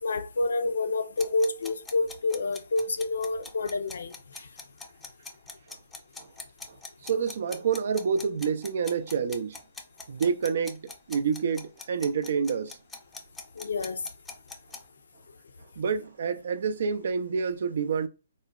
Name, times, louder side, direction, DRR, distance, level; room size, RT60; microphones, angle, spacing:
voice 1, 0.0-4.1 13.6-14.0, left 3 dB, 70° left, 0.4 m, -28 dB
sound 1, 1.2-14.8, left 3 dB, 10° left, 0.4 m, -42 dB
voice 2, 7.0-9.6 10.1-12.8 15.8-18.1, right 6 dB, 55° right, 0.3 m, -28 dB
3.7 x 2.0 x 2.2 m
figure-of-eight pair, 130°, 0 cm